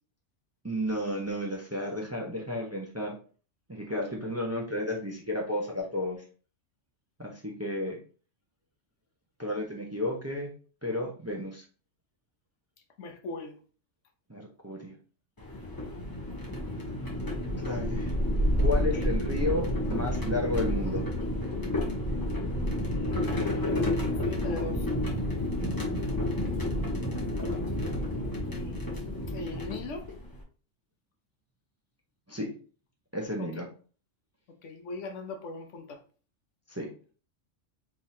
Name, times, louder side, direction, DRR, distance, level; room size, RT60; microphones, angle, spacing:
voice 1, 0.6-3.2 3.7-6.2 7.2-8.0 9.4-10.5 10.8-11.6 14.3-14.9 16.9-17.0 17.6-18.1 18.6-21.1 32.3-32.5 33.1-33.7 36.7-36.9, left 1 dB, 15° right, 0.7 m, -32 dB
voice 2, 13.0-13.6 18.9-19.1 22.8-24.9 28.5-30.1 33.4-33.6 34.6-36.0, left 3 dB, 80° left, 1.1 m, -41 dB
sound 1, 15.4-30.4, left 1 dB, 20° left, 0.9 m, -30 dB
4.5 x 3.6 x 2.7 m
omnidirectional pair, 1.3 m